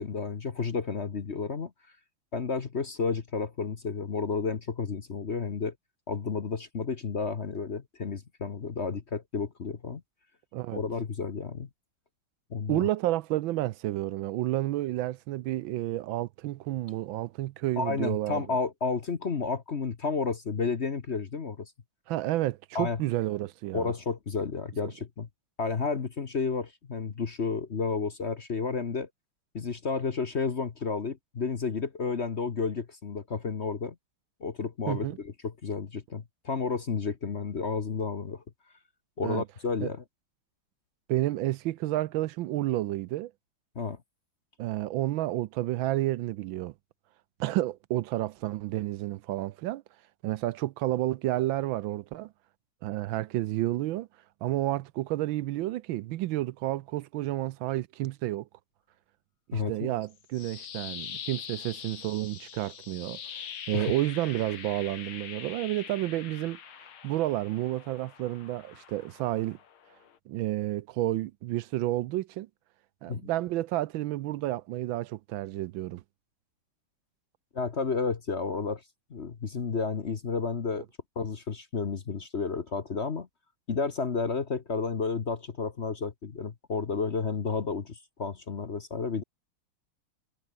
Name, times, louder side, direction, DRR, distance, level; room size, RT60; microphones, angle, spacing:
voice 1, 0.0-1.7 2.3-5.7 6.1-10.0 10.7-11.7 12.5-12.9 17.8-21.7 22.7-23.0 23.7-25.3 25.6-29.1 29.5-33.9 34.4-38.4 39.2-40.0 43.7-44.0 59.5-59.9 63.7-63.9 73.1-73.3 77.5-78.8 79.1-80.9 81.2-83.3 83.7-89.2, left 5 dB, 40° left, 1.2 m, -31 dB
voice 2, 12.7-18.4 22.1-23.9 34.9-35.2 39.2-39.4 39.8-39.9 41.1-43.3 44.6-46.7 47.4-49.8 50.2-52.3 52.8-54.1 54.4-58.5 59.5-66.6 67.0-69.6 70.3-72.5 73.0-76.0, right 15 dB, 80° right, 1.3 m, -30 dB
sound 1, 60.1-70.2, left 8 dB, 80° left, 2.6 m, -44 dB
omnidirectional pair, 2.3 m